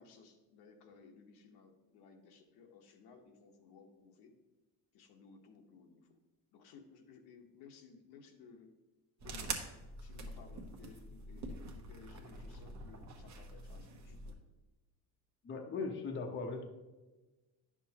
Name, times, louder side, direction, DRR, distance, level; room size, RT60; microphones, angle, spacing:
voice 1, 0.0-4.3 4.9-6.1 6.5-8.7 9.2-9.7 10.0-14.3, left 5 dB, 80° left, 3 dB, 1.1 m, -58 dB
sound 1, 9.2-14.3, right 3 dB, 45° right, 1.0 m, -45 dB
voice 2, 15.4-16.6, left 4 dB, 30° left, 3 dB, 0.8 m, -39 dB
9.8 x 6.2 x 2.9 m, 1.2 s
cardioid pair, 145°, 39 cm